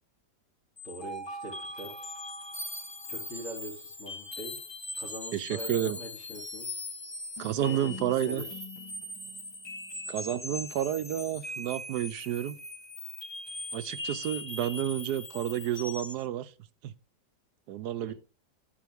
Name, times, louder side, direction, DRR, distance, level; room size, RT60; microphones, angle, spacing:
voice 1, 0.8-2.1 3.1-4.5 5.0-6.8 7.6-8.5 18.0-18.1, right 1 dB, 45° left, 3.6 m, -42 dB
sound 1, 0.8-16.2, left 2 dB, 25° left, 0.6 m, -40 dB
voice 2, 5.3-6.0 7.4-8.4 10.1-12.6 13.7-16.5 16.8-16.9 17.7-18.1, right 11 dB, 75° right, 1.2 m, -30 dB
12.5 x 5.4 x 3.5 m
omnidirectional pair, 1.8 m